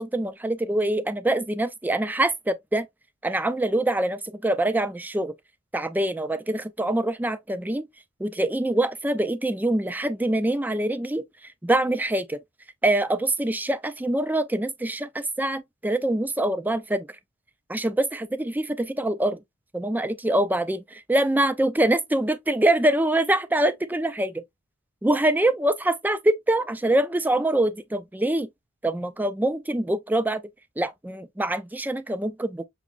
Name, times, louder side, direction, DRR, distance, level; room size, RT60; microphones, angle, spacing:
voice 1, 0.0-2.9 3.2-5.3 5.7-7.8 8.2-11.2 11.6-12.4 12.8-17.1 17.7-19.4 19.7-24.4 25.0-28.5 28.8-30.4 30.8-32.7, right 1 dB, 10° right, 0.4 m, -24 dB
6.1 x 3.0 x 2.5 m
head